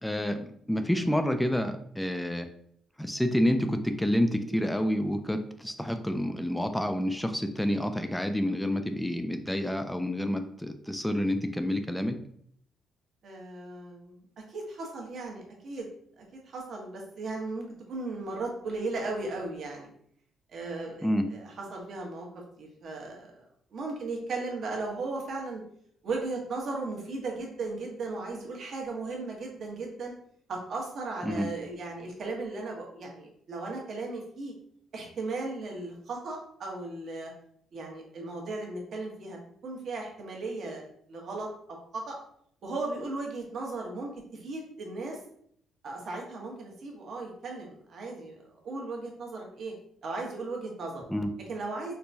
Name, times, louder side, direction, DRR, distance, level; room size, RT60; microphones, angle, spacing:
voice 1, 0.0-2.5 3.0-12.2 21.0-21.3 31.2-31.5 51.1-51.3, equal, 5° left, 7 dB, 0.3 m, -28 dB
voice 2, 13.2-15.9 16.2-19.9 20.5-25.6 26.0-30.1 30.5-34.5 34.9-37.3 37.7-42.2 42.6-45.2 45.8-49.7 50.0-51.0 51.5-51.9, right 3 dB, 60° right, -1 dB, 1.0 m, -36 dB
4.4 x 2.2 x 2.7 m, 0.66 s
cardioid pair, 90°, 0 cm